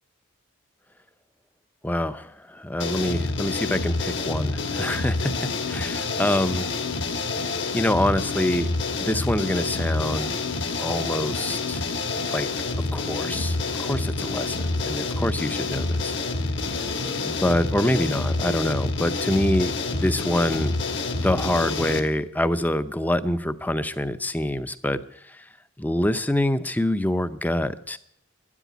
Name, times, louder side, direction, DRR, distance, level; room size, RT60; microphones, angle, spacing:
voice 1, 1.8-6.7 7.7-8.7 9.0-10.4 10.8-11.9 12.3-12.5 12.9-16.1 17.2-20.8 21.2-25.4 25.8-28.0, left 1 dB, 10° left, 12 dB, 0.5 m, -26 dB
sound 1, 2.8-22.0, left 3 dB, 55° left, 1.5 m, -28 dB
12.5 x 10.0 x 9.3 m, 0.72 s
head